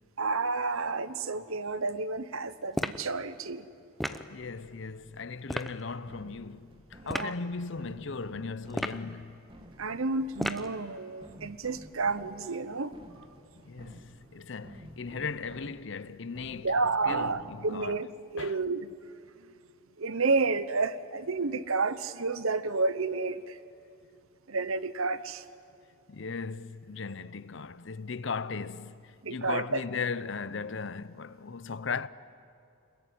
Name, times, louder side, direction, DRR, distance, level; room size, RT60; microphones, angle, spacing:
voice 1, 0.2-3.6 7.0-7.3 9.8-12.9 16.6-18.1 18.3-18.9 20.0-23.6 24.5-25.4 29.2-29.8, right 3 dB, 75° right, 0.9 m, -30 dB
sound 1, 2.7-3.1 4.0-4.3 5.5-5.7 7.1-7.3 8.7-9.1 10.4-10.7, equal, ahead, 0.6 m, -33 dB
voice 2, 4.1-9.4 13.6-16.7 17.1-18.0 18.4-18.6 26.1-32.1, left 4 dB, 55° left, 0.6 m, -37 dB
sound 2, 4.4-17.9, equal, 25° right, 1.8 m, -53 dB
25.5 x 21.5 x 9.5 m
head